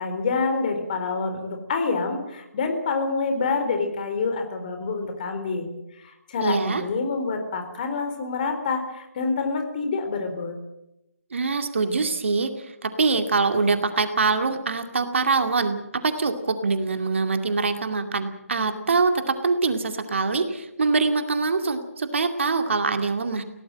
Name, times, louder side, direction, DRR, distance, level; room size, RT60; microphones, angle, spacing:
voice 1, 0.0-10.6, left 4 dB, 35° left, 6 dB, 4.0 m, -27 dB
voice 2, 6.4-6.8 11.3-12.5 12.8-23.4, right 4 dB, 55° right, 7 dB, 2.3 m, -24 dB
23.0 x 17.5 x 7.6 m, 0.86 s
figure-of-eight pair, 145°, 8 cm